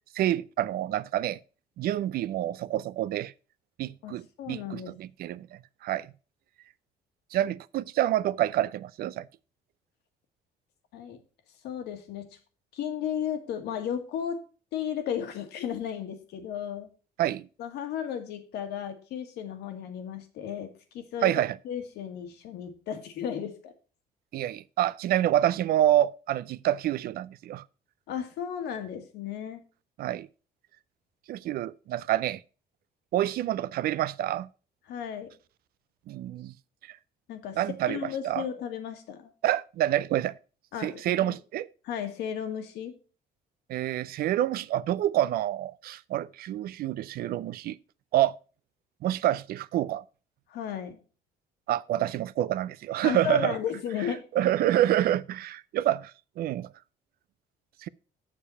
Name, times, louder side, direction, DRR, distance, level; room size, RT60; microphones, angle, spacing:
voice 1, 0.2-1.4 1.8-3.3 3.8-5.5 5.8-6.1 7.3-9.3 17.2-17.5 21.2-21.6 24.3-27.6 30.0-30.3 31.3-32.4 33.1-34.5 36.1-36.5 36.9-37.0 37.6-38.4 39.4-40.3 40.8-41.7 43.7-47.8 48.1-48.4 49.0-50.0 51.7-53.6 54.3-56.1 56.4-56.7 57.8-57.9, right 13 dB, 65° right, 0.5 m, -27 dB
voice 2, 4.0-5.0 10.9-11.2 11.6-12.3 12.7-14.4 14.7-16.9 17.6-21.3 21.6-23.7 28.1-29.6 34.9-35.3 37.3-37.6 37.9-39.3 40.7-41.4 41.8-42.9 50.5-51.0 53.0-54.2, left 8 dB, 80° left, 1.7 m, -34 dB
7.1 x 6.7 x 5.4 m
cardioid pair, 110°, 17 cm